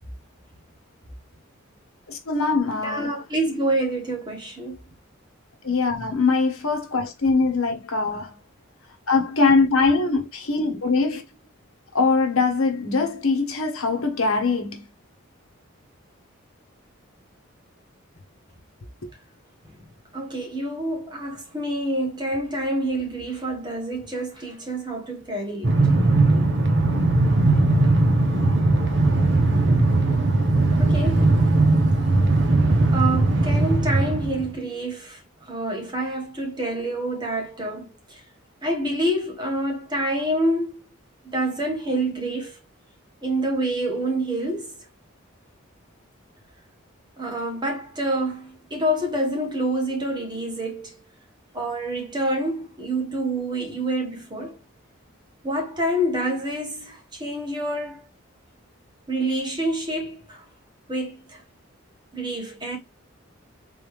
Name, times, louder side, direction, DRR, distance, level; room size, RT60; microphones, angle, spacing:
voice 1, 2.1-3.1 5.6-8.4 9.1-11.2 11.9-14.8 19.0-19.1, left 4 dB, 85° left, 1.1 m, -22 dB
voice 2, 2.8-4.8 20.1-25.7 30.8-31.3 32.9-35.2 35.5-38.2 38.6-40.8 41.2-42.5 43.2-44.7 47.2-50.9 51.5-54.6 55.4-58.1 59.1-60.4 60.9-61.4 62.1-62.8, right 1 dB, 20° right, 1.4 m, -27 dB
Train, 25.6-34.5, right 2 dB, 60° right, 1.1 m, -19 dB
3.9 x 3.4 x 3.2 m
head